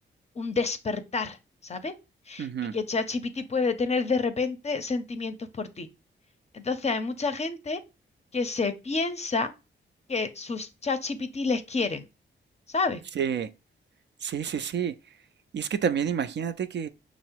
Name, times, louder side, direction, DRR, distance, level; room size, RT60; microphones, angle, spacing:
voice 1, 0.4-1.4 1.6-1.9 2.3-2.5 2.7-5.9 6.5-7.8 8.3-9.5 10.1-12.0 12.7-13.0, left 4 dB, 30° left, 0.5 m, -29 dB
voice 2, 2.4-2.8 13.1-13.5 14.2-15.2 15.5-16.9, right 7 dB, 60° right, 0.4 m, -29 dB
5.6 x 2.0 x 4.4 m
cardioid pair, 90°, 20 cm